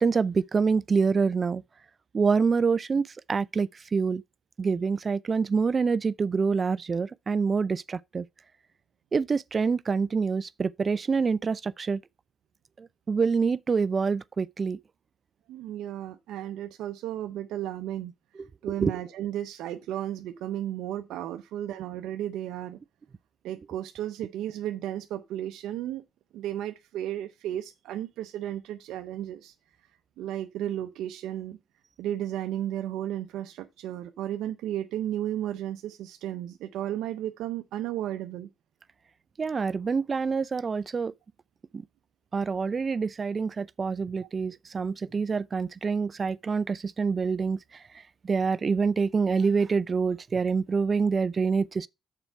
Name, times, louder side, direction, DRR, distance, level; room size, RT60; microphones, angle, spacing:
voice 1, 0.0-1.6 2.1-4.2 4.6-8.2 9.1-12.0 12.8-14.8 18.8-18.9 39.4-41.1 41.7-41.8 42.3-47.8 48.2-51.9, right 5 dB, 35° right, 0.4 m, -26 dB
voice 2, 15.5-18.1 18.6-22.8 23.4-26.0 26.3-29.5 30.2-31.6 32.0-38.5, right 12 dB, 90° right, 0.6 m, -34 dB
6.8 x 4.4 x 5.8 m
cardioid pair, 90°, 0 cm